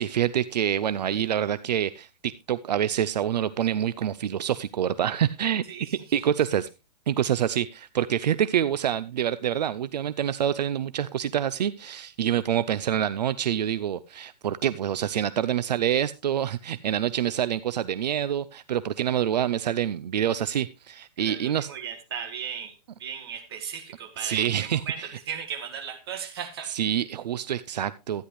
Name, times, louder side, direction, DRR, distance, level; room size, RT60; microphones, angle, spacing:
voice 1, 0.0-6.7 7.1-21.7 24.2-25.1 26.7-28.3, right 10 dB, 75° right, 16 dB, 0.5 m, -26 dB
voice 2, 21.2-25.0 25.3-26.7, right 7 dB, 35° right, 5 dB, 1.8 m, -36 dB
13.0 x 10.0 x 3.1 m, 0.27 s
hypercardioid pair, 180°, 21 cm